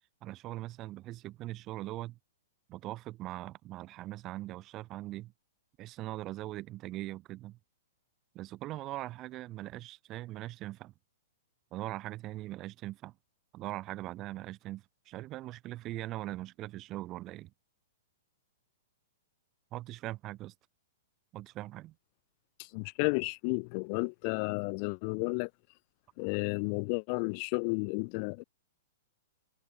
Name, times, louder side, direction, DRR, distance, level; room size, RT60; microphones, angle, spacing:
voice 1, 0.2-2.2 2.7-5.3 5.8-7.6 8.3-10.9 11.7-13.1 13.5-17.5 19.7-20.5 21.3-21.9, right 16 dB, 30° right, 4.0 m, -41 dB
voice 2, 22.6-25.5 26.2-28.4, left 38 dB, 45° left, 0.9 m, -32 dB
hypercardioid pair, 130°, 0 cm